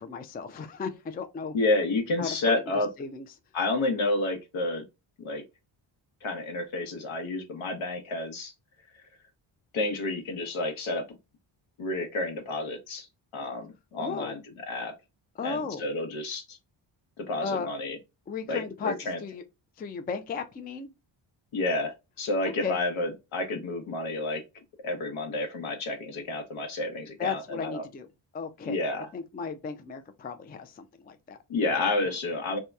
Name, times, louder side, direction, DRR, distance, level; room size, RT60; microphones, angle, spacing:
voice 1, 0.0-1.6 2.2-3.3 14.0-14.4 15.4-15.9 17.4-17.7 18.3-19.4 19.8-20.9 22.6-22.8 27.2-28.1 28.3-28.8 29.1-31.4 31.7-31.8, left 5 dB, 20° left, 0.3 m, -35 dB
voice 2, 1.5-2.9 3.5-4.8 5.2-5.4 6.2-8.5 8.9-9.0 9.7-11.0 11.8-13.1 13.3-14.4 14.7-14.9 15.4-16.6 17.2-18.0 18.5-19.2 21.5-24.4 24.8-27.8 28.6-29.1 31.5-32.6, left 2 dB, 70° left, 0.9 m, -30 dB
2.8 x 2.2 x 2.2 m
cardioid pair, 75°, 50 cm